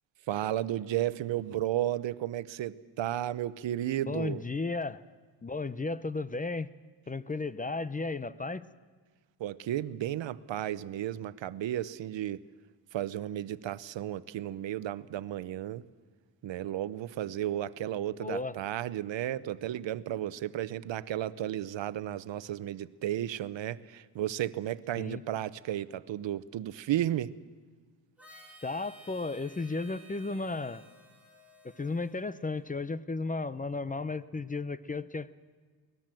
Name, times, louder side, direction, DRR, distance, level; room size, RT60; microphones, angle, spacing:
voice 1, 0.3-4.4 9.4-12.4 12.9-15.8 16.4-27.3, right 12 dB, 85° right, 16 dB, 0.9 m, -33 dB
voice 2, 4.1-5.0 5.4-6.7 7.1-8.7 18.1-18.6 25.0-25.2 28.6-30.9 31.6-35.3, left 3 dB, 20° left, 15 dB, 0.6 m, -34 dB
Harmonica, 28.2-32.9, equal, 5° right, 4.9 m, -55 dB
23.5 x 19.0 x 7.6 m, 1.5 s
cardioid pair, 120°, 44 cm